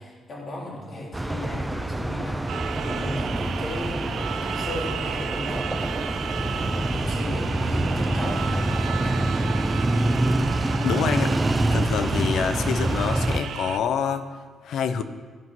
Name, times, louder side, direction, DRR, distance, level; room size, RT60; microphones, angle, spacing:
voice 1, 0.0-9.2, left 1 dB, 45° left, -3 dB, 3.6 m, -36 dB
sound 1, 1.1-13.4, right 1 dB, 15° right, 0.6 m, -26 dB
sound 2, 2.5-13.8, right 9 dB, 70° right, 0.4 m, -34 dB
voice 2, 10.8-11.4 11.7-14.3 14.6-15.0, left 7 dB, 75° left, 10 dB, 0.7 m, -26 dB
14.0 x 5.4 x 6.1 m, 1.5 s
cardioid pair, 90°, 0 cm